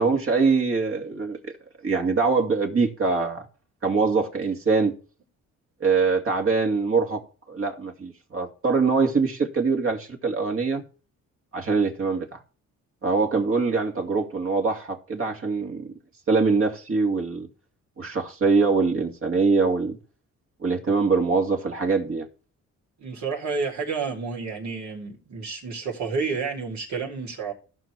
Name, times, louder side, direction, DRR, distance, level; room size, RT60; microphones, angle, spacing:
voice 1, 0.0-1.5 1.8-3.5 3.8-5.0 5.8-10.8 11.5-12.4 13.0-15.9 16.3-17.5 18.0-20.0 20.6-22.3, right 4 dB, 45° right, 2.4 m, -23 dB
voice 2, 23.0-27.5, right 4 dB, 65° right, 3.9 m, -30 dB
16.0 x 6.2 x 3.5 m
cardioid pair, 90°, 30 cm